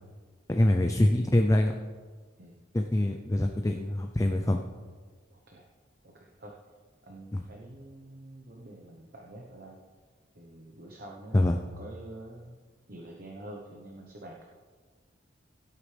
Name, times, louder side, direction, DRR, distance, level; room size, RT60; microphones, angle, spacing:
voice 1, 0.5-1.8 2.7-4.6 7.3-7.4 11.3-11.6, left 1 dB, 15° left, 4 dB, 0.5 m, -24 dB
voice 2, 5.3-5.7 6.0-6.5 7.0-9.8 10.3-12.6 12.9-14.4, right 1 dB, 55° right, 0 dB, 1.1 m, -47 dB
17.5 x 8.2 x 3.4 m, 1.5 s
head